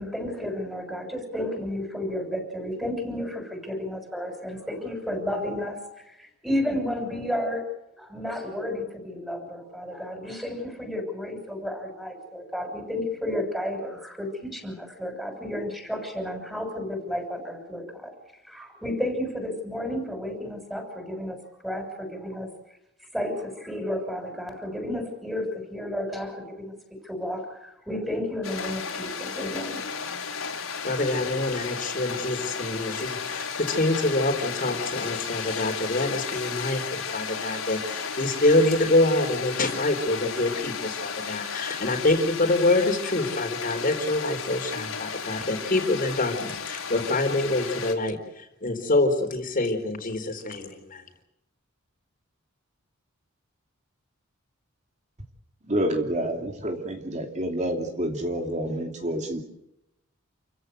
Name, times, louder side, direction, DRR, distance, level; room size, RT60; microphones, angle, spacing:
voice 1, 0.0-5.8 6.1-7.7 8.0-18.1 18.5-21.4 21.6-22.5 23.1-26.7 27.0-29.8, left 1 dB, ahead, 5 dB, 6.6 m, -32 dB
sound 1, 28.4-47.9, left 6 dB, 80° left, 4.7 m, -34 dB
voice 2, 30.8-51.0, left 2 dB, 40° left, 4 dB, 3.9 m, -26 dB
voice 3, 55.7-59.4, right 1 dB, 35° right, 3 dB, 2.8 m, -28 dB
29.0 x 16.0 x 8.1 m, 0.85 s
head